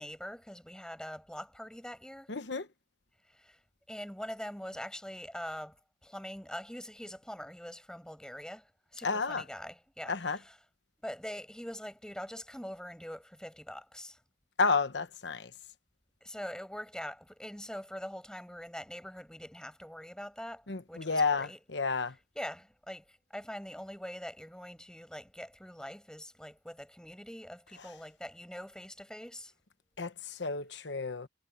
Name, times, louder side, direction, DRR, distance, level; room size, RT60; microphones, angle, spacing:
voice 1, 0.0-2.3 3.3-3.6 3.9-5.8 6.0-10.6 11.0-14.2 16.2-21.6 22.3-29.5, equal, 5° left, 7.3 m, -43 dB
voice 2, 2.3-2.7 9.0-9.4 10.1-10.4 14.6-15.5 20.7-22.1 27.8-27.9 30.0-31.3, left 4 dB, 65° left, 1.1 m, -31 dB
head